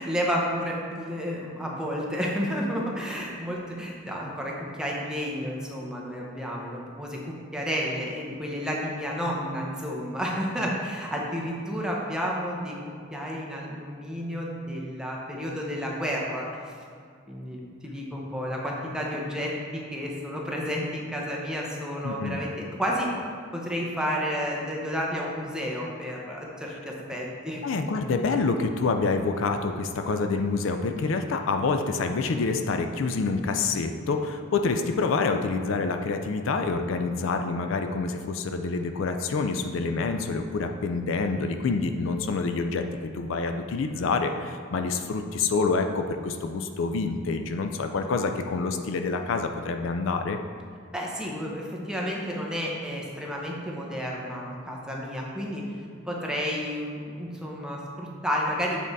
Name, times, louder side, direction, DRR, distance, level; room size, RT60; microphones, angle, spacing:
voice 1, 0.0-12.8 13.1-16.6 17.3-23.1 23.5-27.6 50.9-55.6 56.0-58.8, equal, 5° right, -3 dB, 0.8 m, -31 dB
voice 2, 22.0-22.4 27.6-42.8 43.1-50.4, left 4 dB, 70° left, 6 dB, 0.4 m, -27 dB
7.4 x 3.6 x 4.0 m, 2.2 s
head